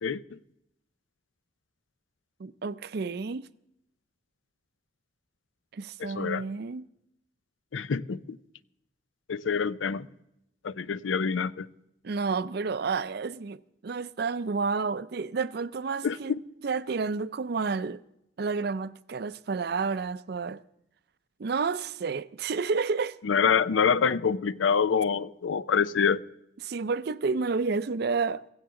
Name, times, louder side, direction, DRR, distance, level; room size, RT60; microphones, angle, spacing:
voice 1, 2.4-3.5 5.7-6.8 12.0-13.6 13.8-16.4 16.6-18.0 18.4-20.6 21.4-23.2 26.6-28.4, right 4 dB, 55° right, 0.5 m, -30 dB
voice 2, 6.0-6.4 7.7-8.4 9.3-10.1 10.6-11.7 16.0-16.2 23.2-26.2, left 6 dB, 85° left, 0.5 m, -26 dB
16.5 x 16.0 x 3.8 m
head